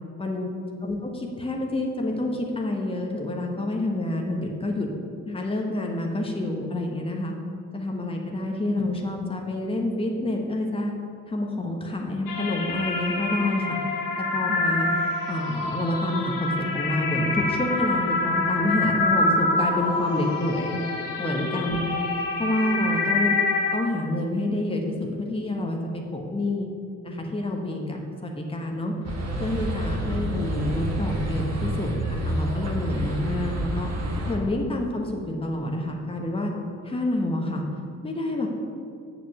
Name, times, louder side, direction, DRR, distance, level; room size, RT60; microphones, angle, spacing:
voice 1, 0.2-0.5 0.8-4.9 5.3-7.3 7.7-10.9 11.3-13.8 14.2-20.8 21.2-21.8 22.4-23.3 23.7-26.7 27.0-28.9 29.4-33.9 34.3-36.5 36.8-37.6 38.0-38.5, left 1 dB, 15° left, 1 dB, 1.2 m, -28 dB
sound 1, 12.3-23.7, left 3 dB, 55° left, 1.1 m, -26 dB
sound 2, 29.0-34.3, right 1 dB, 40° right, 1.6 m, -28 dB
7.7 x 6.6 x 5.6 m, 2.4 s
figure-of-eight pair, 45°, 40 cm